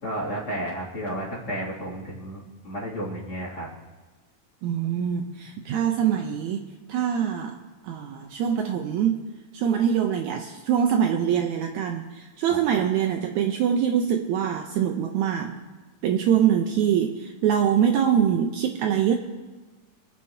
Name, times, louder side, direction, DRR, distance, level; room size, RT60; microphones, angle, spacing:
voice 1, 0.0-3.7, right 1 dB, 40° left, -5 dB, 3.2 m, -32 dB
voice 2, 4.6-9.2 9.5-15.6 16.0-19.1, right 8 dB, 75° right, 4 dB, 2.0 m, -24 dB
27.0 x 9.7 x 2.8 m, 1.3 s
omnidirectional pair, 3.6 m